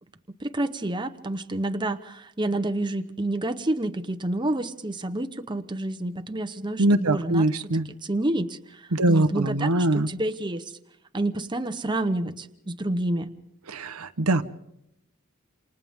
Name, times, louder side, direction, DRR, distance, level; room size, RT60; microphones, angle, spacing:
voice 1, 0.4-7.5 8.0-10.7 11.1-13.3, right 1 dB, 20° right, 8 dB, 0.9 m, -29 dB
voice 2, 6.8-7.9 8.9-10.1 13.7-14.4, right 1 dB, 85° right, 10 dB, 1.0 m, -22 dB
28.5 x 28.5 x 3.6 m, 0.80 s
head